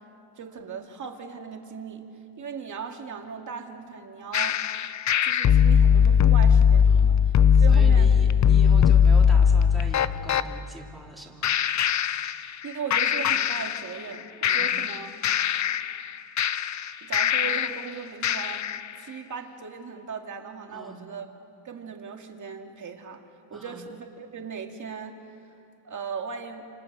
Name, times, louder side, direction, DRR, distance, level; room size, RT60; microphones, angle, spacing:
voice 1, 0.4-2.0 2.4-4.6 5.2-7.2 7.6-8.2 12.6-15.1 17.0-18.6 19.0-21.3 21.6-23.2 23.5-25.2 25.8-26.7, right 6 dB, 35° right, 3 dB, 2.2 m, -38 dB
sound 1, 4.3-10.5 11.4-12.7 12.9-14.1 14.4-17.9 18.2-18.9, left 7 dB, 35° left, 0.6 m, -20 dB
voice 2, 6.9-7.2 7.6-11.5 14.4-14.8 20.7-21.0 23.5-23.8, equal, ahead, -3 dB, 2.7 m, -42 dB
29.5 x 27.5 x 6.7 m, 2.6 s
cardioid pair, 160°, 49 cm